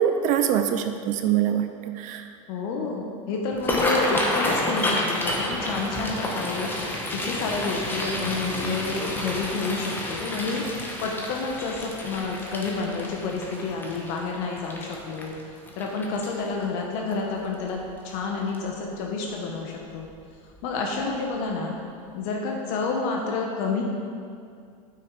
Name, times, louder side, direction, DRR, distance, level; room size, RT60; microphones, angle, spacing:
voice 1, 0.0-2.3, right 9 dB, 45° right, 8 dB, 0.5 m, -24 dB
voice 2, 2.5-6.7 7.2-10.6 11.0-15.3 15.7-20.1 20.6-21.7 22.1-23.8, left 4 dB, 60° left, 0 dB, 1.2 m, -29 dB
sound 1, 3.5-16.6 17.1-17.4 17.7-18.1 18.5-18.7 19.9-20.1 20.5-20.6 21.1-21.2, left 1 dB, 10° left, 1.3 m, -30 dB
9.0 x 5.9 x 4.9 m, 2.3 s
supercardioid pair, 120°, 18 cm